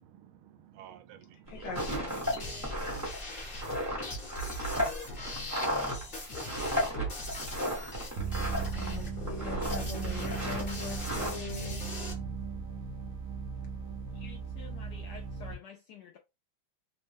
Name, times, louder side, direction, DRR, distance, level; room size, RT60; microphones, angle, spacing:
voice 1, 0.0-2.8, right 10 dB, 80° right, 1.4 m, -53 dB
voice 2, 1.5-2.2 8.7-11.8 14.2-14.3, left 5 dB, 60° left, 1.6 m, -42 dB
sound 1, 1.5-8.9 9.2-9.8 10.0-11.3, equal, 10° right, 0.8 m, -34 dB
sound 2, 1.8-12.1, equal, 35° left, 0.9 m, -40 dB
sound 3, 8.2-15.6, right 5 dB, 60° right, 0.9 m, -37 dB
voice 3, 14.2-16.2, left 5 dB, 80° left, 0.9 m, -50 dB
3.4 x 2.1 x 3.3 m
omnidirectional pair, 2.3 m